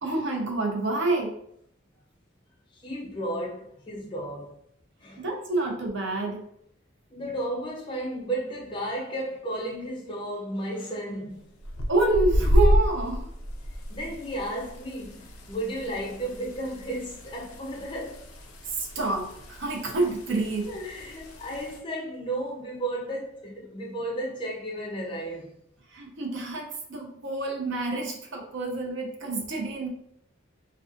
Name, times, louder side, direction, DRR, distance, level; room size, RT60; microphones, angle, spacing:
voice 1, 0.0-1.3 5.2-6.4 11.9-13.3 18.8-20.7 25.9-29.9, right 2 dB, 60° right, 0.6 m, -28 dB
voice 2, 2.7-4.6 5.0-5.2 7.1-11.4 13.9-18.2 20.7-25.5, right 1 dB, 25° left, 0.3 m, -33 dB
sound 1, 11.6-21.8, equal, 90° left, 0.5 m, -30 dB
2.5 x 2.3 x 2.5 m
head